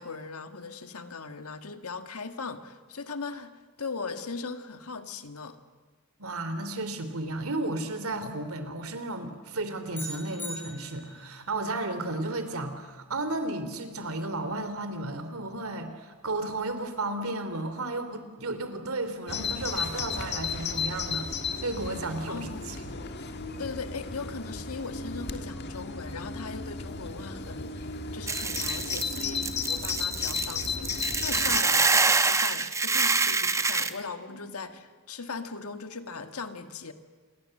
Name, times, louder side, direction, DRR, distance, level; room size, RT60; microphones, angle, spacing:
voice 1, 0.0-5.6 22.3-23.1 23.6-36.9, left 4 dB, 80° left, 1.7 m, -39 dB
voice 2, 6.2-21.3 21.6-22.8 34.4-34.5, right 2 dB, 75° right, 3.1 m, -33 dB
sound 1, 9.9-11.3, left 1 dB, 10° left, 4.2 m, -40 dB
Bird vocalization bird call bird song, 19.3-31.6, left 5 dB, 50° left, 1.7 m, -34 dB
Hiss / Boiling, 28.3-33.9, right 4 dB, 15° right, 0.9 m, -26 dB
28.0 x 22.0 x 7.8 m
head